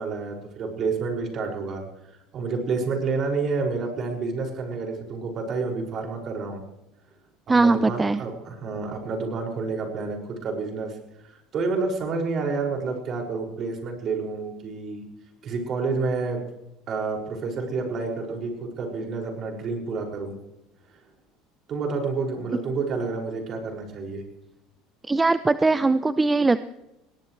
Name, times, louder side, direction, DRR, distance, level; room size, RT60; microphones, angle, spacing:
voice 1, 0.0-1.8 2.3-6.6 7.5-11.0 11.5-15.0 15.4-16.4 16.9-20.3 20.9-21.0 21.7-24.2, right 4 dB, 45° right, 2 dB, 6.0 m, -29 dB
voice 2, 7.5-8.2 25.1-26.6, right 3 dB, 15° right, 13 dB, 0.6 m, -20 dB
22.5 x 17.5 x 3.3 m, 0.90 s
supercardioid pair, 115°, 0 cm